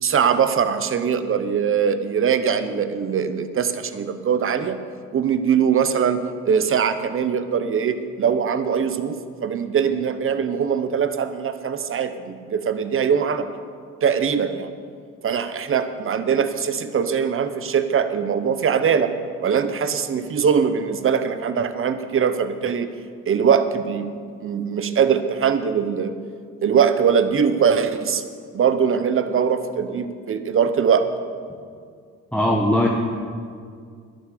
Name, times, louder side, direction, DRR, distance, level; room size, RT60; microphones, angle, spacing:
voice 1, 0.0-4.8 5.1-13.5 14.0-14.7 15.2-19.1 19.4-22.9 23.3-24.1 24.4-26.2 26.6-28.2 28.5-31.1, right 7 dB, 45° right, 10 dB, 1.0 m, -21 dB
voice 2, 32.3-32.9, left 1 dB, 5° left, -2 dB, 1.4 m, -19 dB
11.0 x 10.5 x 6.7 m, 2.1 s
cardioid pair, 90°, 30 cm